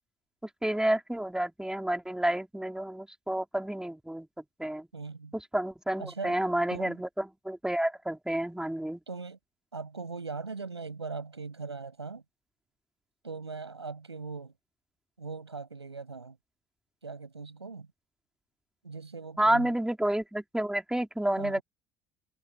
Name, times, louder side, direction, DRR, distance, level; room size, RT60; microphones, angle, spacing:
voice 1, 0.4-4.3 4.6-4.9 5.3-9.0 19.4-21.6, right 1 dB, 5° right, 4.3 m, -30 dB
voice 2, 4.9-5.3 6.0-6.4 6.7-7.0 9.1-9.4 9.7-12.2 13.2-14.5 15.2-16.4 17.0-17.9 18.8-19.7 21.4-21.6, right 4 dB, 90° right, 7.4 m, -40 dB
figure-of-eight pair, 60°, 14 cm